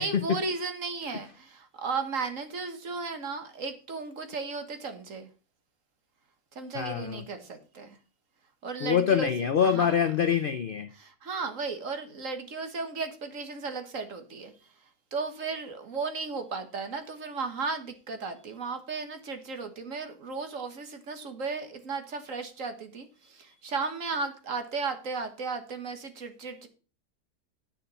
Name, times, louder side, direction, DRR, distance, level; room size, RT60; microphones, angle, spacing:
voice 1, 0.0-5.3 6.5-8.0 8.6-9.3 9.6-10.0 10.9-14.5 15.1-26.7, right 4 dB, 55° right, 7 dB, 1.7 m, -35 dB
voice 2, 6.7-7.2 8.8-10.9, left 8 dB, 65° left, 11 dB, 0.5 m, -25 dB
9.3 x 6.7 x 5.5 m, 0.35 s
omnidirectional pair, 1.7 m